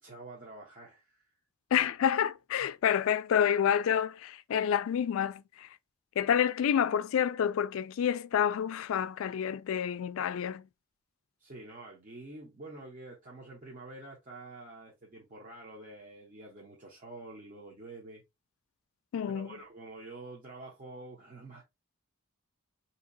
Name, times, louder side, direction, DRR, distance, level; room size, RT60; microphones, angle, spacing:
voice 1, 0.0-1.4 2.6-2.7 11.4-18.2 19.3-21.6, right 2 dB, 35° right, 0.8 m, -47 dB
voice 2, 1.7-5.7 6.2-10.6 19.1-19.5, left 8 dB, 65° left, 0.3 m, -28 dB
3.8 x 2.8 x 2.6 m
head